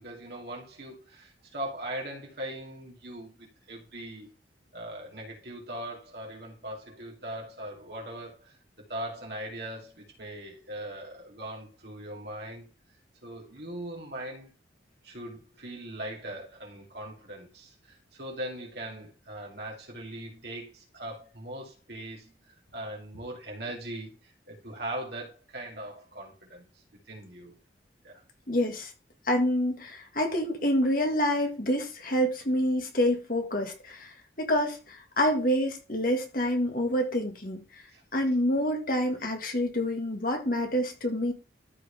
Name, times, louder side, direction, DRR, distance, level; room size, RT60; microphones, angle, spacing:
voice 1, 0.0-4.3 4.7-8.6 8.9-12.7 13.2-14.5 15.0-26.7 27.1-27.6 28.0-28.2 37.9-38.0, right 1 dB, 60° right, 3.3 m, -40 dB
voice 2, 28.5-28.9 29.3-37.8 38.1-41.3, equal, 50° left, 2.0 m, -27 dB
13.5 x 4.8 x 3.6 m
head